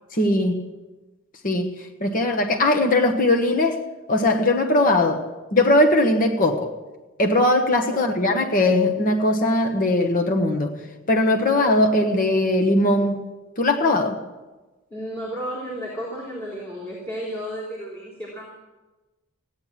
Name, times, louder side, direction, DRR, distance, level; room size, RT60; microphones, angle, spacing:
voice 1, 0.2-0.6 1.4-1.7 2.0-3.8 4.1-5.2 5.5-6.7 7.2-10.8 11.1-13.2 13.6-14.2, left 1 dB, 40° left, 3 dB, 1.3 m, -20 dB
voice 2, 14.9-18.5, equal, 10° left, -6 dB, 3.5 m, -33 dB
16.5 x 9.7 x 7.5 m, 1.2 s
head